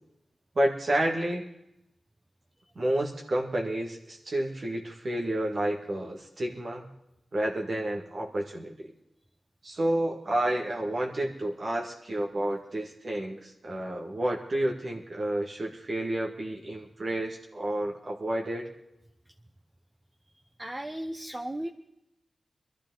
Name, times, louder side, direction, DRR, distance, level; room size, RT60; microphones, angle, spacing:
voice 1, 0.6-1.5 2.8-6.9 7.3-8.9 9.6-18.7, right 1 dB, 60° right, 0 dB, 1.9 m, -30 dB
voice 2, 20.6-21.7, right 1 dB, 25° right, 4 dB, 1.0 m, -35 dB
21.0 x 13.5 x 3.9 m, 0.86 s
cardioid pair, 50°, 0 cm